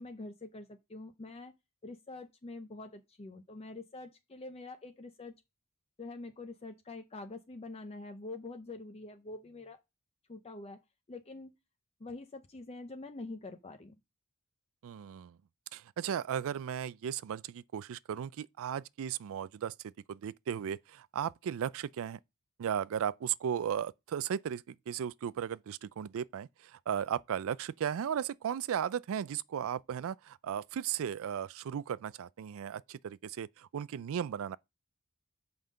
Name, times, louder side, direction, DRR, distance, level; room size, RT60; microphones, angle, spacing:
voice 1, 0.0-1.5 1.8-5.4 6.0-9.8 10.3-10.8 11.1-11.6 12.0-13.9, left 2 dB, 30° left, 0.6 m, -45 dB
voice 2, 14.8-15.4 15.7-22.2 22.6-34.6, right 8 dB, 65° right, 0.4 m, -36 dB
5.7 x 5.3 x 6.4 m
head